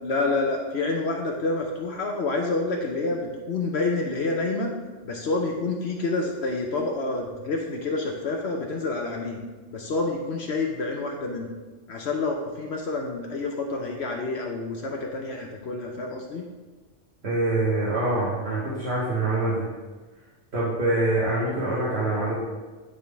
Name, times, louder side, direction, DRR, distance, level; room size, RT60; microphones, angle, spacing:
voice 1, 0.0-4.7 5.0-9.4 9.7-11.5 11.9-16.5, left 3 dB, 65° left, 1 dB, 1.0 m, -28 dB
voice 2, 17.2-19.7 20.5-22.3, right 2 dB, 60° right, -8 dB, 1.6 m, -25 dB
10.5 x 3.7 x 3.4 m, 1.3 s
omnidirectional pair, 1.3 m